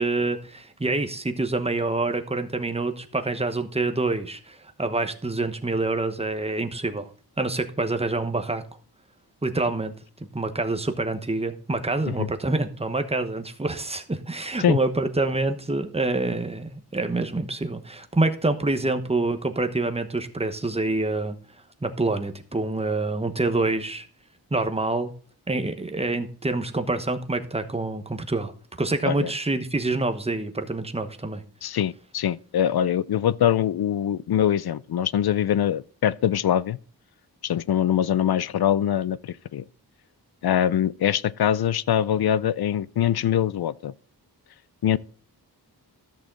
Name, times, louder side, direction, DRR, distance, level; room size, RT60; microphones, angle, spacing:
voice 1, 0.0-7.1 7.4-8.6 9.4-9.9 10.3-21.4 21.8-24.1 24.5-25.1 25.5-28.5 28.8-31.4, right 2 dB, 15° right, 1.0 m, -26 dB
voice 2, 31.6-36.8 37.4-39.6 40.4-43.9 44.8-45.0, left 10 dB, 70° left, 0.5 m, -23 dB
13.5 x 6.5 x 3.8 m
wide cardioid pair, 120°, 39 cm